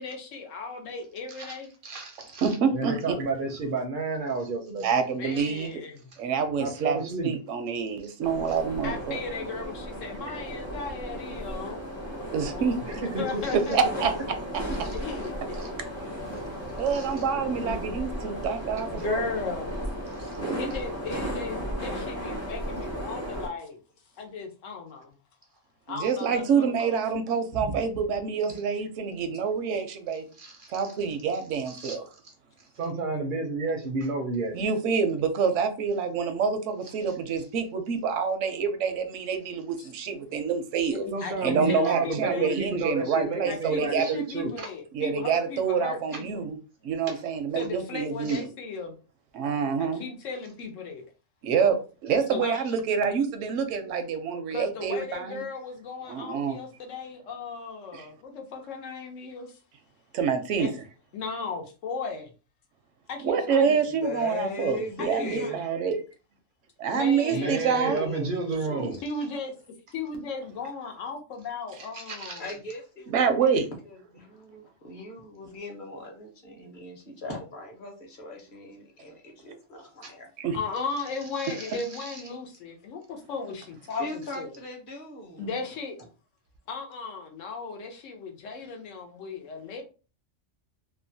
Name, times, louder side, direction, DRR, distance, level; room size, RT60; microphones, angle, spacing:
voice 1, 0.0-1.7 5.2-6.1 8.8-11.9 12.3-12.8 13.1-14.0 14.6-15.5 17.6-18.0 18.9-19.8 20.6-23.8 24.2-25.1 25.9-27.0 39.8-39.9 40.9-42.6 43.5-46.4 47.5-49.0 49.8-51.1 52.3-52.6 54.5-59.6 60.6-60.7 61.1-62.3 63.1-63.8 65.0-65.6 66.9-67.7 69.0-69.5 69.9-72.5 80.5-84.6 85.4-86.0 86.7-89.8, left 4 dB, 85° left, 1.1 m, -36 dB
voice 2, 1.8-4.9 5.4-5.5 6.6-7.3 12.9-13.6 14.7-14.9 15.6-15.7 16.3-16.4 16.9-17.1 20.1-20.4 27.5-27.7 30.4-30.9 31.7-32.0 32.8-34.5 41.1-44.7 47.1-47.2 48.3-48.4 67.3-69.0 71.9-72.4 80.0-80.1 81.4-82.2, right 3 dB, 60° right, 0.6 m, -32 dB
voice 3, 2.4-3.1 4.8-5.8 6.2-9.2 12.3-13.0 13.7-14.1 16.8-19.3 20.4-20.6 25.9-30.2 30.7-32.0 34.5-41.1 41.4-44.2 44.9-46.6 46.8-48.4 49.3-50.0 51.4-51.8 52.0-55.4 56.1-56.6 57.9-58.1 60.1-60.7 63.2-66.0 66.8-68.1 68.7-69.0 73.1-73.7 80.4-80.6 85.4-85.5, right 6 dB, 80° right, 0.9 m, -27 dB
sound 1, 8.2-23.5, equal, 20° left, 0.5 m, -35 dB
voice 4, 64.0-65.6 67.8-68.3 72.4-80.3 83.9-85.4, left 1 dB, 45° left, 0.9 m, -38 dB
2.9 x 2.1 x 2.6 m
omnidirectional pair, 1.3 m